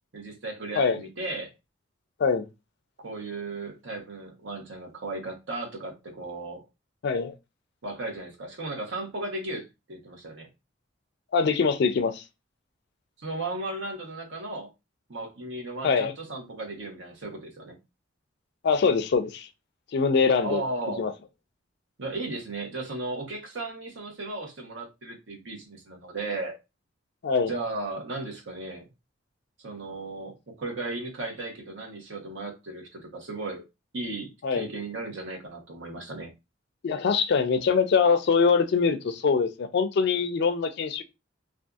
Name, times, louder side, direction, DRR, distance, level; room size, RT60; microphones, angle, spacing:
voice 1, 0.1-1.5 3.0-6.6 7.8-10.5 13.2-14.7 15.1-17.7 20.4-21.1 22.0-26.5 27.5-28.9 29.6-33.6 33.9-36.3, right 2 dB, 65° right, 0.9 m, -35 dB
voice 2, 7.0-7.3 11.3-12.2 15.8-16.1 18.6-19.5 19.9-20.6 21.0-21.1 27.2-27.5 34.4-34.7 36.8-41.0, left 5 dB, 60° left, 0.4 m, -23 dB
2.6 x 2.4 x 2.3 m
head